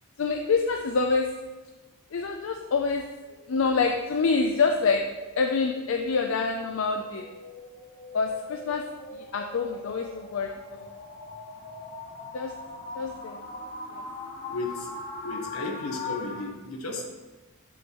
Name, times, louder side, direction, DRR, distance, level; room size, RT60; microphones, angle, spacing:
voice 1, 0.2-1.4 2.1-3.1 3.5-7.3 8.1-9.0 9.3-10.9 12.3-12.6 13.0-13.4 13.9-14.0, left 4 dB, 60° left, 4 dB, 0.4 m, -26 dB
sound 1, 3.2-16.5, left 3 dB, 30° left, 0.9 m, -42 dB
voice 2, 14.5-14.9 15.2-17.0, left 2 dB, 80° left, 2 dB, 1.2 m, -34 dB
7.8 x 6.2 x 3.0 m, 1.2 s
head